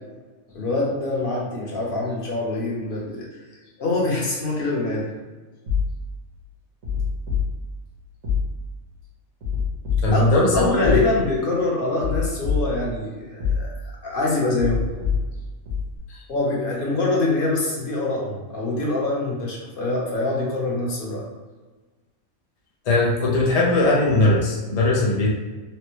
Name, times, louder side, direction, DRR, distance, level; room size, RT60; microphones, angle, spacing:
voice 1, 0.5-3.4 3.8-5.1 10.1-13.7 14.0-14.8 16.3-21.2, left 2 dB, 45° left, -3 dB, 0.9 m, -24 dB
sound 1, 5.7-6.3 6.8-7.9 8.2-8.9 9.4-11.4 12.0-13.0 13.4-14.0 14.6-16.0, left 5 dB, 80° right, 1.7 m, -27 dB
voice 2, 10.0-11.0 16.1-16.3 22.8-25.3, left 2 dB, 65° left, -2 dB, 0.3 m, -19 dB
4.2 x 2.1 x 3.0 m, 1.3 s
omnidirectional pair, 1.4 m